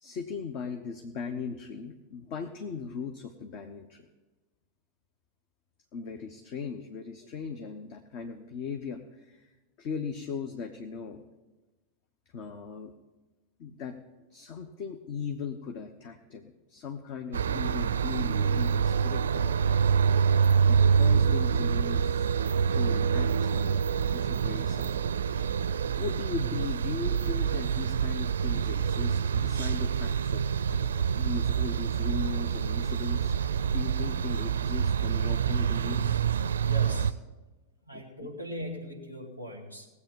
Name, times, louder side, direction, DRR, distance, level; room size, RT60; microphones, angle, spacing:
voice 1, 0.0-4.1 5.9-9.5 9.8-11.2 12.3-12.9 13.6-14.0 14.3-20.0 20.7-22.3 22.7-23.8 24.1-25.0 26.0-33.3 33.7-36.1 37.9-38.3, left 6 dB, 45° left, 6 dB, 1.0 m, -38 dB
sound 1, 17.3-37.1, right 7 dB, 65° right, 0.4 m, -26 dB
voice 2, 36.6-37.2 37.8-39.9, equal, 85° left, 1 dB, 2.5 m, -40 dB
19.5 x 8.2 x 5.4 m, 1.2 s
figure-of-eight pair, 90°, 0 cm